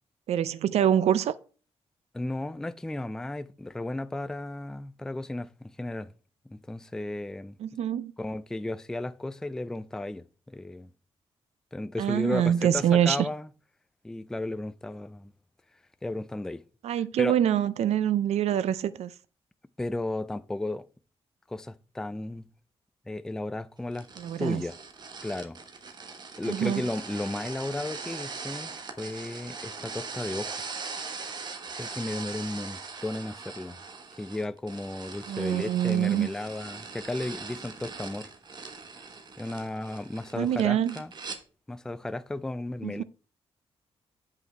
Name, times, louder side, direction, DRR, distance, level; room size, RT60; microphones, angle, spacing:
voice 1, 0.3-1.3 7.6-8.1 12.0-13.3 16.8-19.1 24.2-24.6 26.5-26.8 35.3-36.3 40.4-41.0 42.8-43.0, right 10 dB, 85° right, 0.5 m, -25 dB
voice 2, 2.1-6.1 6.5-7.6 8.2-10.9 11.7-13.5 14.0-15.3 16.0-16.6 17.2-17.4 19.8-20.8 21.5-22.4 23.1-24.1 24.4-24.7 25.2-25.6 26.4-28.7 29.0-30.6 31.8-33.8 34.2-38.3 39.4-41.1 41.7-43.0, left 2 dB, 5° left, 0.3 m, -34 dB
sound 1, 23.9-41.4, right 4 dB, 40° right, 1.2 m, -41 dB
8.1 x 5.7 x 4.4 m
wide cardioid pair, 155°, 11 cm